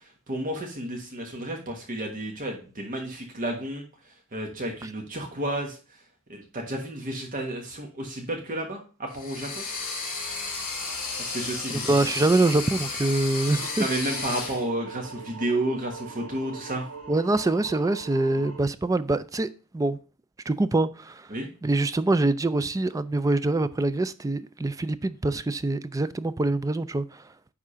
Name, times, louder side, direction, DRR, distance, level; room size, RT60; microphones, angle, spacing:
voice 1, 0.3-3.8 4.3-5.8 6.3-9.6 11.2-11.9 13.8-16.9 21.3-21.5, right 1 dB, 40° right, 1.4 m, -31 dB
sound 1, 9.1-14.6, left 4 dB, 40° left, 4.8 m, -33 dB
voice 2, 11.7-13.9 17.1-20.0 20.5-21.3 21.6-27.2, right 2 dB, 15° right, 0.3 m, -25 dB
sound 2, 13.4-18.6, right 5 dB, 90° right, 1.2 m, -42 dB
9.8 x 3.6 x 5.6 m
head